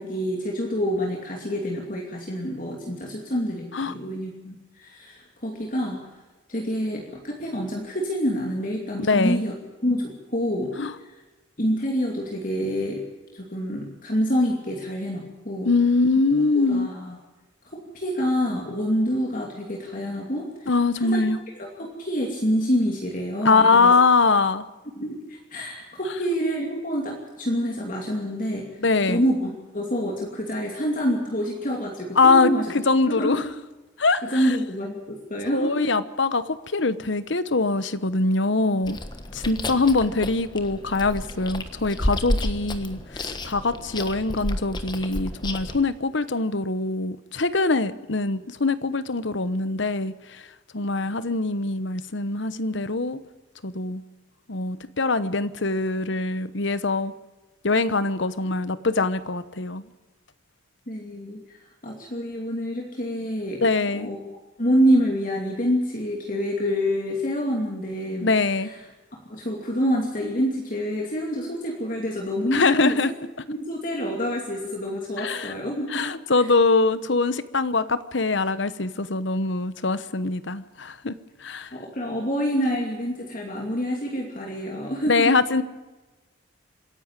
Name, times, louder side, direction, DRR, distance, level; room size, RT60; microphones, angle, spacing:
voice 1, 0.0-6.0 6.5-9.5 9.8-10.7 11.0-11.1 11.6-13.0 13.3-15.7 16.5-17.2 17.7-20.7 21.0-21.2 21.6-23.9 25.0-28.8 29.1-32.7 33.1-33.4 34.3-35.9 60.9-63.6 63.9-64.2 64.6-68.3 68.6-68.8 69.3-73.1 73.5-76.5 81.7-85.3, equal, 40° left, 0 dB, 2.7 m, -27 dB
voice 2, 9.0-9.4 10.8-10.9 15.6-16.9 20.7-21.4 23.4-24.6 28.8-29.2 32.2-33.4 34.0-34.5 35.5-39.0 39.3-50.4 50.7-53.2 53.6-54.0 54.5-57.1 57.6-59.8 63.6-64.1 68.2-68.7 72.5-73.1 75.2-75.5 75.9-81.7 85.1-85.6, left 3 dB, 65° left, 14 dB, 1.0 m, -23 dB
Chewing mastication, 38.8-45.8, left 1 dB, 20° left, 1.3 m, -31 dB
26.0 x 11.0 x 9.0 m, 1.2 s
head